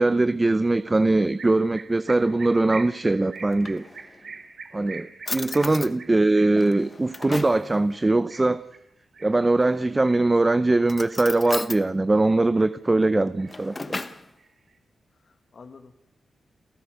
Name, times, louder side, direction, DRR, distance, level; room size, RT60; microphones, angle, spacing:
voice 1, 0.0-3.8 4.7-8.6 9.2-14.0, right 2 dB, 20° right, 13 dB, 0.7 m, -21 dB
sound 1, 1.4-10.7 11.1-11.8 12.2-13.1 13.4-14.7, right 4 dB, 55° right, 3.2 m, -44 dB
Drawer open or close, 3.4-4.3 4.9-5.0 5.3-5.9 6.6-7.7 9.5-10.1 10.8-11.8 13.2-14.3, left 3 dB, 30° left, 1.3 m, -35 dB
voice 2, 15.1-16.0, left 4 dB, 55° left, 5 dB, 2.0 m, -49 dB
30.0 x 14.5 x 6.7 m, 0.82 s
cardioid pair, 95°, 0 cm